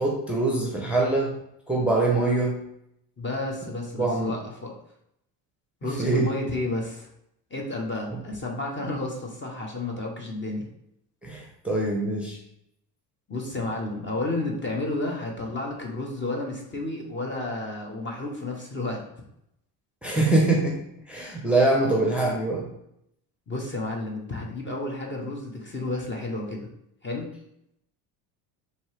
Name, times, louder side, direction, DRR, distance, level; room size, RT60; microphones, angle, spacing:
voice 1, 0.0-1.3 1.7-2.6 4.0-4.3 6.0-6.3 11.2-12.4 20.0-20.8 21.1-22.7, right 2 dB, ahead, -2 dB, 0.8 m, -23 dB
voice 2, 3.2-4.7 5.8-7.1 7.5-10.7 13.3-19.0 23.5-26.7 27.0-27.3, left 2 dB, 25° left, 0 dB, 0.9 m, -31 dB
4.2 x 2.8 x 3.3 m, 0.78 s
supercardioid pair, 90°, 49 cm